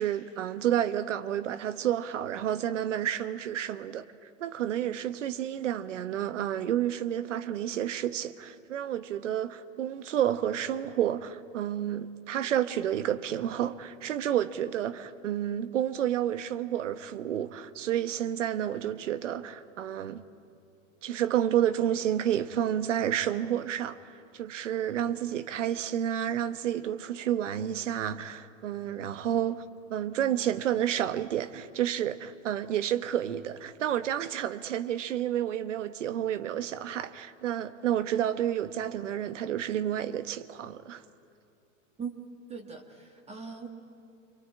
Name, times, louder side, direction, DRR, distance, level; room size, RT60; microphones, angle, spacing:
voice 1, 0.0-4.1 4.4-20.2 21.0-29.6 29.9-41.0, right 10 dB, 70° right, 1.2 m, -30 dB
voice 2, 42.5-43.7, right 6 dB, 15° right, 1.9 m, -40 dB
26.5 x 23.5 x 8.8 m
hypercardioid pair, 105°, 38 cm